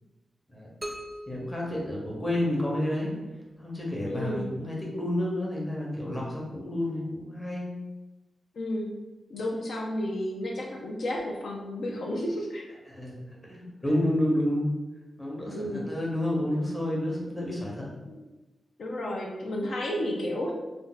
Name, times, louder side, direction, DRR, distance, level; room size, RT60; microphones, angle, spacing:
sound 1, 0.8-2.7, right 1 dB, 20° right, 0.4 m, -42 dB
voice 1, 1.3-3.1 3.6-7.7 12.8-14.7 15.2-17.9, left 1 dB, 15° left, -4 dB, 0.9 m, -30 dB
voice 2, 4.0-4.5 8.6-9.0 9.3-12.7 15.5-15.8 18.1-18.2 18.8-20.5, left 1 dB, 75° left, -1 dB, 0.4 m, -32 dB
2.6 x 2.2 x 3.8 m, 1.1 s
wide cardioid pair, 105°, 0 cm